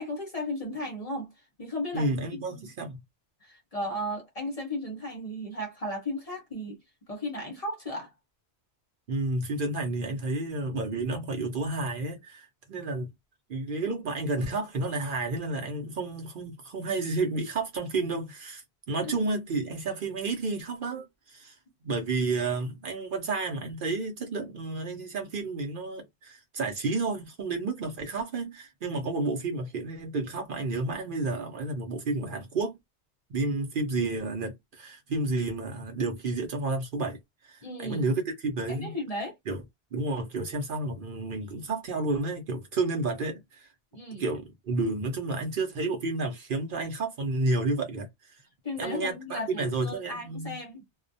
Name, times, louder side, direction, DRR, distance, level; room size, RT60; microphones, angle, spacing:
voice 1, 0.0-1.3 1.6-2.1 2.3-2.7 3.4-6.8 7.1-8.1 37.6-38.1 38.7-39.3 43.9-44.2 48.6-50.8, left 1 dB, 40° left, 0.7 m, -35 dB
voice 2, 1.9-3.0 9.1-13.1 13.5-21.6 21.8-32.8 33.3-37.2 37.4-38.9 39.5-39.6 39.9-43.7 44.2-48.4 48.8-50.6, right 3 dB, 55° right, 0.7 m, -31 dB
2.3 x 2.1 x 2.6 m
omnidirectional pair, 1.2 m